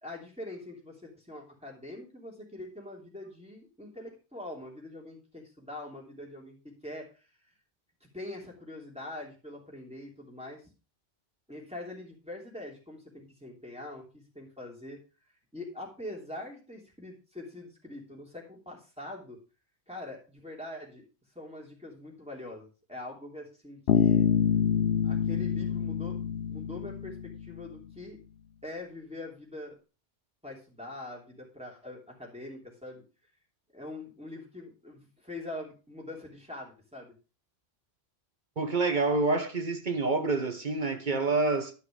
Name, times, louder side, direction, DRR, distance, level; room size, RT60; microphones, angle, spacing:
voice 1, 0.0-6.6 6.8-7.3 8.0-10.7 11.5-15.0 15.5-19.4 19.9-21.0 21.3-24.3 25.0-28.2 28.6-29.8 30.4-33.0 33.7-37.1, left 2 dB, 5° right, 3.2 m, -43 dB
Bass guitar, 23.9-27.7, left 8 dB, 80° left, 1.0 m, -26 dB
voice 2, 38.6-41.7, right 3 dB, 50° right, 1.2 m, -27 dB
11.5 x 5.8 x 5.0 m
omnidirectional pair, 1.1 m